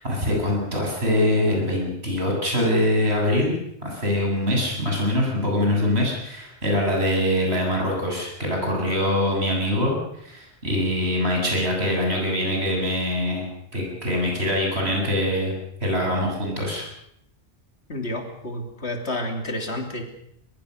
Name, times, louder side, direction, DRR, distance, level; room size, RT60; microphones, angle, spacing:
voice 1, 0.0-13.5 13.7-16.9, left 1 dB, 70° right, -1 dB, 8.0 m, -23 dB
voice 2, 17.9-20.0, left 1 dB, 75° left, 4 dB, 3.4 m, -30 dB
22.5 x 22.0 x 6.7 m, 0.72 s
omnidirectional pair, 1.1 m